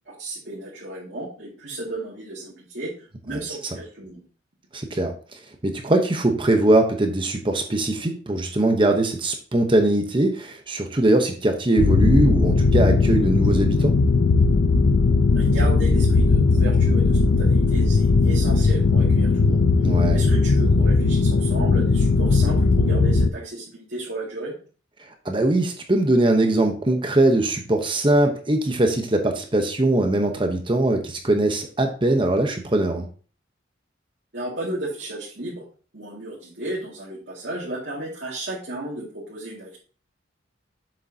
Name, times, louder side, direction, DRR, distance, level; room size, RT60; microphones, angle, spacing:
voice 1, 0.1-4.2 15.3-19.7 20.1-24.5 34.3-35.6 35.9-39.8, right 1 dB, 60° right, -6 dB, 2.2 m, -34 dB
voice 2, 4.7-13.9 19.8-20.2 25.2-33.1, right 1 dB, 25° right, 4 dB, 0.9 m, -21 dB
sound 1, 11.8-23.3, left 3 dB, 90° left, 0.6 m, -18 dB
7.5 x 6.6 x 2.8 m, 0.39 s
head